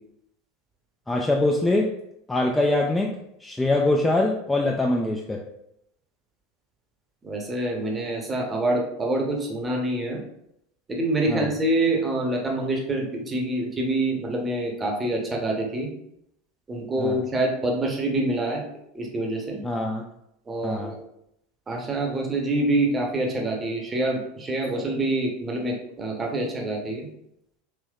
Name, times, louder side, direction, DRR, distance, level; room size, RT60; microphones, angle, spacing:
voice 1, 1.1-2.0 2.3-3.1 3.4-5.4 11.3-11.5 17.0-17.2 19.6-20.0 20.6-20.9, left 2 dB, 10° left, 0 dB, 0.3 m, -23 dB
voice 2, 7.2-10.2 10.9-15.9 16.7-18.6 18.9-19.6 20.5-21.0 21.7-27.1, right 2 dB, 20° right, 0 dB, 0.8 m, -26 dB
3.3 x 2.9 x 2.3 m, 0.77 s
figure-of-eight pair, 80°, 0 cm